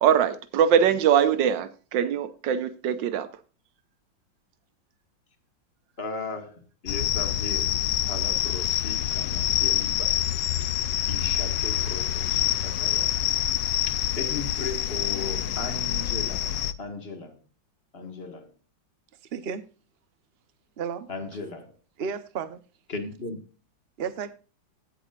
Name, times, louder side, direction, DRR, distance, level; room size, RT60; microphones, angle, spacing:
voice 1, 0.0-3.3, right 8 dB, 80° right, 1.6 m, -22 dB
voice 2, 6.0-7.7 8.0-10.2 10.6-10.7 11.1-13.2 13.9-16.5 16.8-17.4 17.9-18.5 21.1-21.7 22.9-23.4, left 3 dB, 35° left, 1.9 m, -37 dB
sound 1, 6.9-16.7, left 12 dB, 75° left, 1.3 m, -26 dB
voice 3, 19.3-19.6 20.8-21.1 22.0-22.6 24.0-24.3, right 6 dB, 45° right, 0.9 m, -32 dB
16.5 x 7.7 x 2.4 m
omnidirectional pair, 2.0 m